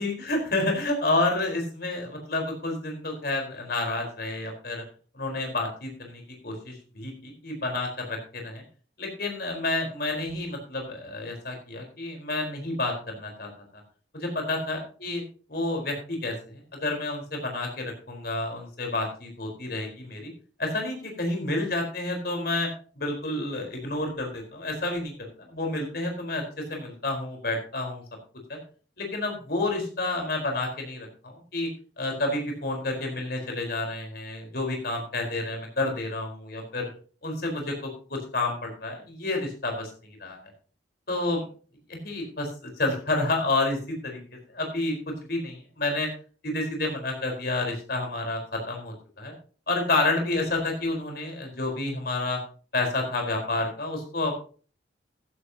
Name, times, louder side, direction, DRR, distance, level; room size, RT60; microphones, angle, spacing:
voice 1, 0.0-4.8 5.1-8.6 9.0-13.5 14.1-15.2 15.5-20.3 20.6-22.7 23.0-28.0 28.5-28.6 29.0-31.7 32.0-36.9 37.2-40.4 41.1-41.4 41.9-44.2 44.5-46.1 46.4-49.3 49.7-52.4 52.7-54.4, left 2 dB, 55° left, 2 dB, 4.6 m, -30 dB
15.0 x 11.5 x 2.9 m, 0.40 s
head